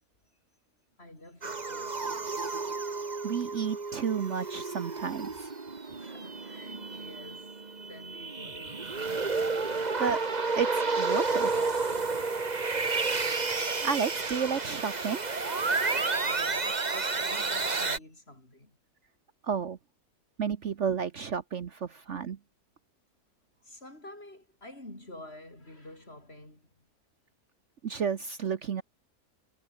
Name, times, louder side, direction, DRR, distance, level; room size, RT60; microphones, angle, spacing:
voice 1, 1.0-2.7 5.9-9.3 16.2-18.8 23.6-26.8, left 1 dB, 40° left, 7.1 m, -49 dB
sound 1, 1.4-18.0, right 4 dB, 30° right, 1.6 m, -31 dB
voice 2, 3.2-5.5 10.0-10.2 10.5-11.6 13.8-15.2 19.4-19.8 20.4-22.4 27.8-28.8, right 6 dB, 55° right, 1.2 m, -31 dB
omnidirectional pair, 1.6 m